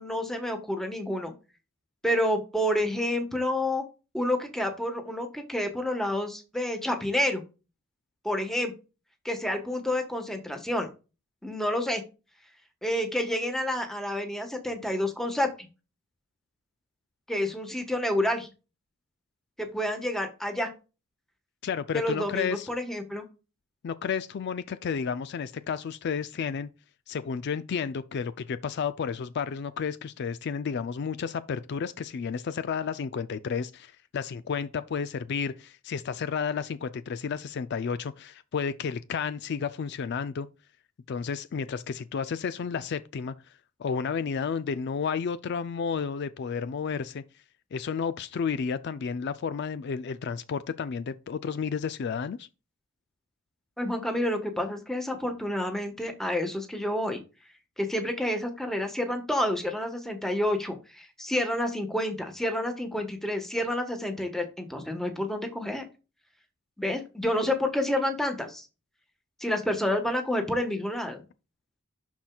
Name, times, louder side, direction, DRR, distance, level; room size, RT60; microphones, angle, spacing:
voice 1, 0.0-1.3 2.0-3.8 4.1-7.4 8.2-8.7 9.2-10.9 11.4-12.0 12.8-15.7 17.3-18.5 19.6-20.7 21.9-23.2 53.8-57.2 57.8-65.9 66.8-68.7 69.4-71.2, left 1 dB, ahead, 1.2 m, -29 dB
voice 2, 21.6-22.7 23.8-26.7 27.1-40.5 41.1-43.3 43.8-47.2 47.7-52.5, left 6 dB, 55° left, 0.4 m, -32 dB
11.5 x 4.4 x 2.3 m
head